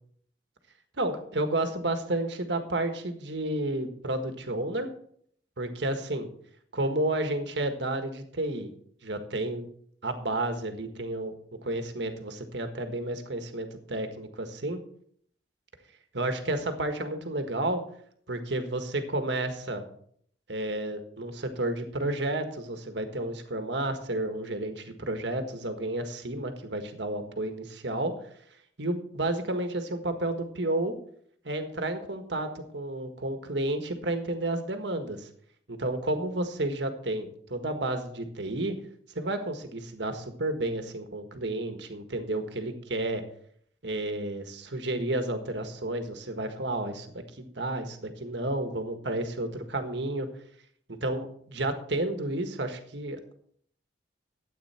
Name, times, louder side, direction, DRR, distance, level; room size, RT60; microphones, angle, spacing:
voice 1, 1.0-4.9 5.6-6.3 6.7-8.7 9.0-9.6 10.0-11.3 11.6-14.8 16.1-17.8 18.3-19.8 20.5-28.1 28.8-30.9 31.4-35.3 35.7-38.7 39.1-43.2 43.8-50.3 51.0-53.2, right 1 dB, 65° right, 7 dB, 1.6 m, -31 dB
12.5 x 8.7 x 4.4 m, 0.63 s
head